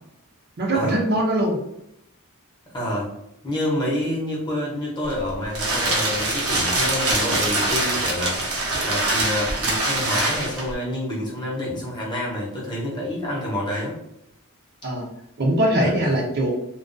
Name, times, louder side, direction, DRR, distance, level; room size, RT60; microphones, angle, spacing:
voice 1, 0.6-1.6 14.8-15.1 15.4-16.5, right 1 dB, 45° right, 0 dB, 0.5 m, -21 dB
voice 2, 2.7-3.1 3.4-14.0 15.8-16.3, left 1 dB, 20° left, -4 dB, 0.7 m, -28 dB
sound 1, 5.1-10.7, right 2 dB, 80° right, 0.7 m, -24 dB
2.3 x 2.2 x 2.5 m, 0.80 s
head